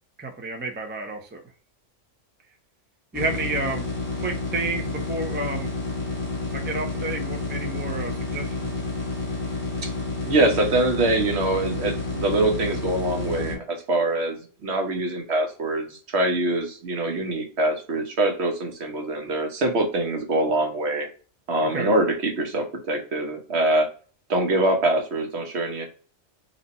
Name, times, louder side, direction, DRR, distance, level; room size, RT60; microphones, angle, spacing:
voice 1, 0.2-1.4 3.1-3.9 4.2-5.7 6.5-8.7 21.6-21.9, right 2 dB, 15° right, 3 dB, 0.4 m, -30 dB
sound 1, 3.1-13.5, left 2 dB, 15° left, 1.6 m, -30 dB
voice 2, 10.3-21.1 21.5-23.9 24.3-25.8, right 2 dB, 60° right, 4 dB, 1.1 m, -24 dB
4.1 x 2.6 x 4.1 m, 0.39 s
omnidirectional pair, 1.3 m